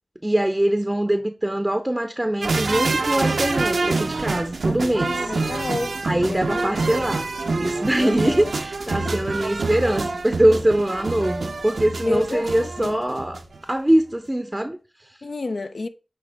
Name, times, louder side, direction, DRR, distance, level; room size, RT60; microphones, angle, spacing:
voice 1, 0.2-5.3 6.0-7.3 7.6-13.4 13.7-15.2, right 1 dB, 20° right, 0.6 m, -23 dB
sound 1, 2.4-13.6 13.9-14.0, right 3 dB, 85° right, 0.6 m, -26 dB
voice 2, 4.7-6.0 6.3-6.8 8.0-8.5 12.0-12.5 12.8-13.0 15.2-15.9, left 3 dB, 70° left, 0.6 m, -29 dB
8.7 x 3.3 x 3.4 m
cardioid pair, 40°, 0 cm